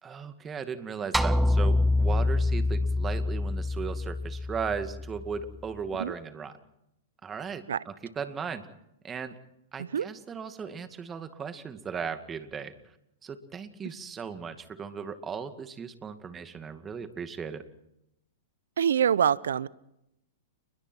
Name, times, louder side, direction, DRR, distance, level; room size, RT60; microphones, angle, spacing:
voice 1, 0.0-6.6 7.2-8.7 9.0-9.4 9.7-12.7 13.2-17.6, right 6 dB, 20° right, 9 dB, 2.2 m, -37 dB
sound 1, 1.1-5.6, left 2 dB, 5° right, 1.0 m, -26 dB
voice 2, 18.8-19.7, right 8 dB, 75° right, 21 dB, 0.8 m, -25 dB
29.5 x 21.5 x 4.6 m, 0.82 s
hypercardioid pair, 115°, 0 cm